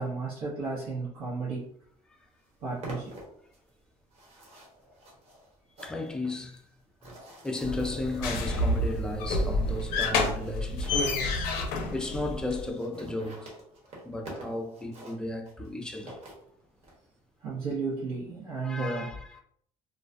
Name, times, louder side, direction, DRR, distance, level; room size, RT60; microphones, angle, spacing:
voice 1, 0.0-1.7 2.6-3.1 17.4-19.1, right 4 dB, 85° right, 0.8 m, -33 dB
sound 1, 1.9-2.0 2.2-11.1 11.7-11.8 12.0-12.1 12.3-12.4 12.6-17.0, right 1 dB, 45° right, 0.9 m, -47 dB
voice 2, 5.8-6.6 7.4-11.1 11.9-13.7 14.0-16.2 18.6-19.4, left 2 dB, 5° left, 0.3 m, -34 dB
sound 2, 7.6-12.7, left 2 dB, 80° left, 0.5 m, -29 dB
2.4 x 2.1 x 2.5 m
cardioid pair, 115°, 15 cm